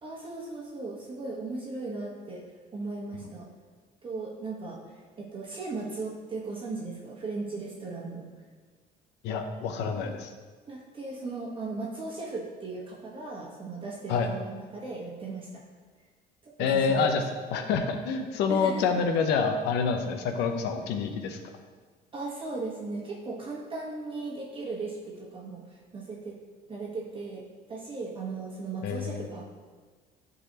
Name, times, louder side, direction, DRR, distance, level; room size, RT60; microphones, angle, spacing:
voice 1, 0.0-3.5 4.0-8.3 10.7-15.6 16.4-17.2 18.5-18.9 22.1-26.4 26.7-29.4, right 3 dB, 30° right, -4 dB, 1.3 m, -37 dB
voice 2, 9.2-10.3 14.1-14.3 16.6-17.2 17.5-21.4 28.8-29.3, left 5 dB, 90° left, 6 dB, 0.8 m, -27 dB
11.0 x 4.0 x 2.9 m, 1.4 s
cardioid pair, 110°, 17 cm